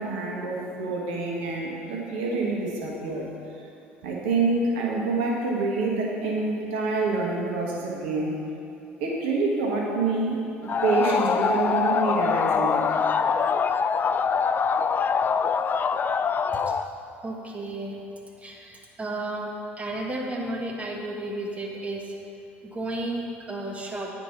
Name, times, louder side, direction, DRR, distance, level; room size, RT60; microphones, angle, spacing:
voice 1, 0.0-3.3 4.0-8.3 9.0-13.0, right 3 dB, 75° right, -2 dB, 1.3 m, -27 dB
sound 1, 10.7-16.9, left 6 dB, 30° left, 0.4 m, -24 dB
voice 2, 17.2-18.0 18.4-19.5 19.8-22.1 22.6-24.1, right 2 dB, 20° right, -1 dB, 1.3 m, -33 dB
9.3 x 5.2 x 5.8 m, 2.7 s
hypercardioid pair, 60°, 6 cm